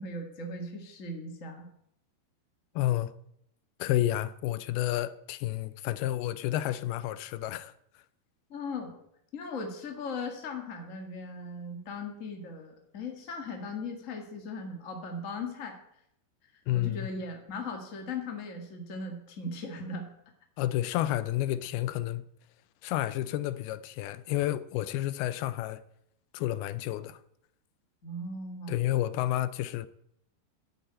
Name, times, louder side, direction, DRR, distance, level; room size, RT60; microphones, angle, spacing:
voice 1, 0.0-1.7 8.5-9.0 9.3-15.8 16.7-20.1 28.0-28.8, left 2 dB, 50° left, 0.9 m, -38 dB
voice 2, 2.8-3.1 3.8-7.7 16.7-17.1 20.6-22.2 22.8-25.8 26.3-27.2 28.7-29.9, left 14 dB, 80° left, 2.4 m, -30 dB
12.0 x 8.0 x 8.6 m
omnidirectional pair, 4.7 m